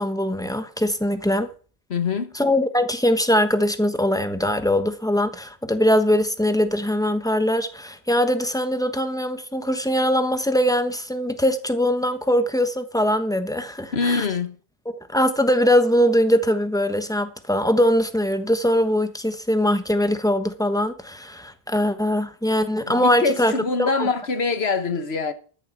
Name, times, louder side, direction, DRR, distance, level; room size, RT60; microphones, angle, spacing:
voice 1, 0.0-1.5 2.3-14.3 15.1-23.5 23.8-24.1, equal, 5° left, 1.1 m, -21 dB
voice 2, 1.9-2.3 13.9-14.6 22.8-25.3, left 4 dB, 80° left, 1.6 m, -24 dB
13.5 x 6.9 x 7.3 m
omnidirectional pair, 1.0 m